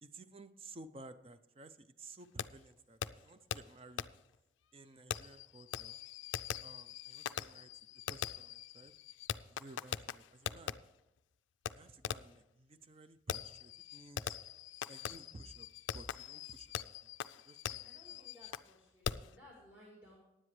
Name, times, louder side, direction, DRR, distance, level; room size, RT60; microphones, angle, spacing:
voice 1, 0.0-4.1 4.7-6.0 6.6-7.7 8.1-9.0 9.5-10.8 11.7-14.3 14.8-17.1 17.5-18.3, right 2 dB, 30° right, 12 dB, 0.5 m, -55 dB
Fireworks, 2.4-2.5 3.0-3.1 3.5-3.6 4.0-4.1 5.1-10.7 11.7-11.8 12.0-12.4 13.3-18.7 19.0-19.3, left 9 dB, 85° left, 0.3 m, -42 dB
voice 2, 17.8-20.2, left 1 dB, 10° right, -3 dB, 2.2 m, -60 dB
15.5 x 9.9 x 3.2 m, 0.93 s
head